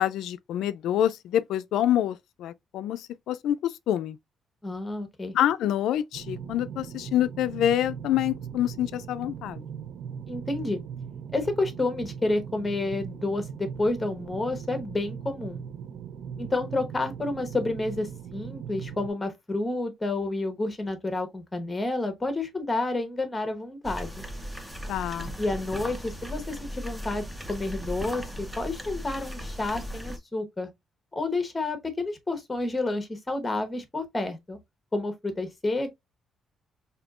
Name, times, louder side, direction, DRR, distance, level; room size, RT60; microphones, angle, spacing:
voice 1, 0.0-4.2 5.3-9.6 24.9-25.3, left 11 dB, 85° left, 0.3 m, -26 dB
voice 2, 4.6-5.3 10.3-10.8 11.3-15.6 16.4-24.2 25.4-30.7 31.1-34.6 34.9-35.9, left 2 dB, 15° left, 1.0 m, -30 dB
sound 1, 6.1-19.1, right 7 dB, 65° right, 0.3 m, -39 dB
sound 2, 23.8-30.2, equal, 5° right, 0.6 m, -37 dB
5.2 x 2.7 x 2.4 m
cardioid pair, 150°, 0 cm